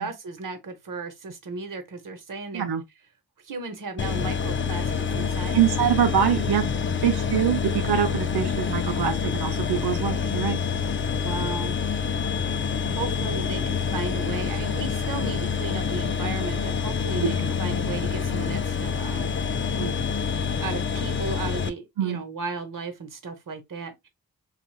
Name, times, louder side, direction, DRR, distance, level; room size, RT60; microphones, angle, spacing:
voice 1, 0.0-2.7 3.4-5.9 11.2-11.8 13.0-19.3 20.6-24.1, right 4 dB, 55° right, 1.0 m, -35 dB
sound 1, 4.0-21.7, left 6 dB, 30° left, 0.5 m, -27 dB
voice 2, 5.5-6.7 7.0-10.6 12.8-13.0 15.2-15.3 17.2-17.6 19.7-19.9 22.0-22.2, right 9 dB, 70° right, 0.6 m, -25 dB
3.0 x 2.4 x 2.3 m
cardioid pair, 45°, 39 cm